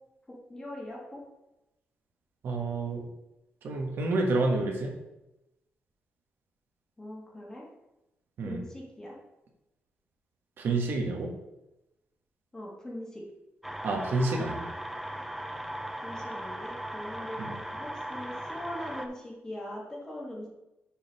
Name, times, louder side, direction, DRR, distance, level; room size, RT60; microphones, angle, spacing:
voice 1, 0.3-1.2 7.0-7.6 8.4-9.2 12.5-13.2 16.0-20.5, left 1 dB, 15° left, -3 dB, 1.5 m, -41 dB
voice 2, 2.4-3.1 3.6-4.9 8.4-8.6 10.6-11.3 13.8-14.7 17.4-17.6, right 2 dB, 60° right, 1 dB, 1.1 m, -29 dB
sound 1, 13.6-19.1, right 1 dB, 5° right, 0.4 m, -38 dB
6.8 x 3.8 x 5.2 m, 0.93 s
wide cardioid pair, 175°, 4 cm